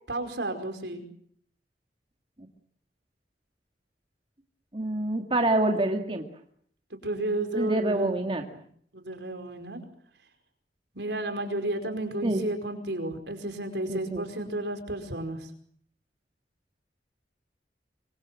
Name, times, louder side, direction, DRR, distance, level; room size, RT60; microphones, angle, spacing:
voice 1, 0.1-1.0 6.9-8.3 8.9-9.8 10.9-15.5, right 1 dB, 70° right, 7 dB, 5.2 m, -32 dB
voice 2, 4.7-6.2 7.5-8.4 12.2-12.4 13.9-14.3, right 1 dB, 30° right, 3 dB, 2.2 m, -26 dB
25.5 x 24.5 x 7.6 m, 0.64 s
head